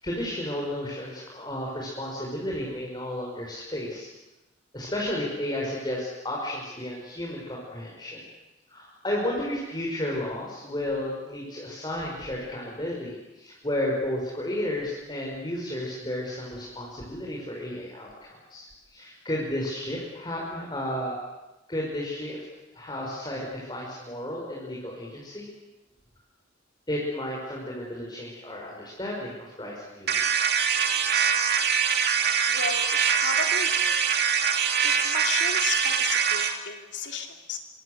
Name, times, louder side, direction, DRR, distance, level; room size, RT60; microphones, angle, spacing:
voice 1, 0.0-4.1 4.7-8.2 8.7-21.2 21.7-22.5 22.7-25.5 26.9-30.5, left 1 dB, 25° left, -3 dB, 5.4 m, -33 dB
sound 1, 30.1-36.6, right 7 dB, 55° right, 2.9 m, -23 dB
voice 2, 32.5-33.9 34.8-37.6, left 5 dB, 70° left, 4 dB, 3.2 m, -34 dB
26.5 x 24.5 x 8.0 m, 1.0 s
head